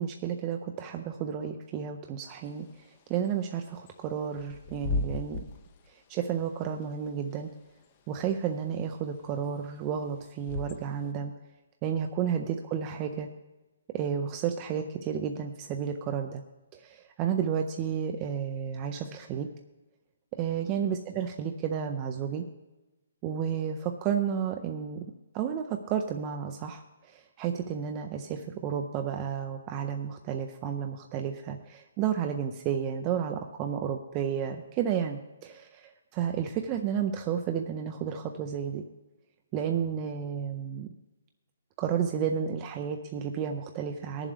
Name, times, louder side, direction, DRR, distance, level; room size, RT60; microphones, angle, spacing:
voice 1, 0.0-2.7 3.1-5.4 6.1-7.5 8.1-11.3 11.8-13.3 13.9-16.4 16.7-19.5 20.3-22.4 23.2-25.0 25.3-38.8 39.5-40.9 41.8-44.3, right 8 dB, 25° right, 5 dB, 0.5 m, -32 dB
Bird / Wind, 2.4-11.1, left 4 dB, 30° left, 0.7 m, -39 dB
19.0 x 7.2 x 3.4 m, 1.1 s
hypercardioid pair, 165°, 0 cm